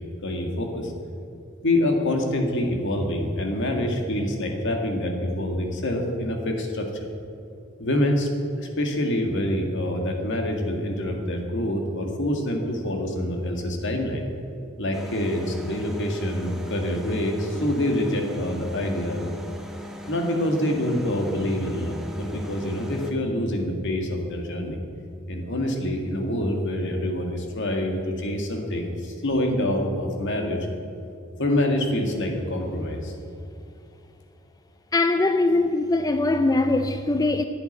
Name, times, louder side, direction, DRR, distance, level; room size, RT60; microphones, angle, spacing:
voice 1, 0.2-0.9 1.6-7.1 7.8-8.3 8.6-14.3 14.8-19.3 20.1-24.8 25.3-30.6 31.4-33.1, left 1 dB, 60° left, 2.0 m, -26 dB
sound 1, 14.9-23.1, equal, ahead, 1.3 m, -40 dB
voice 2, 34.9-37.4, left 2 dB, 15° left, 0.4 m, -21 dB
10.5 x 8.4 x 9.9 m
head